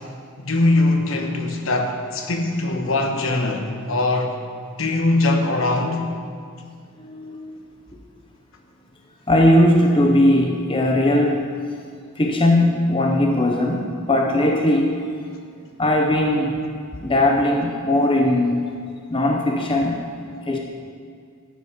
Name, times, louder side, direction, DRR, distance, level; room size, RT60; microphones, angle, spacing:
voice 1, 0.4-4.4 4.8-6.1, left 2 dB, 65° left, 1.1 m, -21 dB
voice 2, 7.0-7.6 9.3-11.5 12.2-15.0 15.8-16.6 17.0-18.7 19.1-20.1 20.5-20.6, left 1 dB, 25° left, 0.7 m, -19 dB
12.0 x 8.5 x 5.0 m
head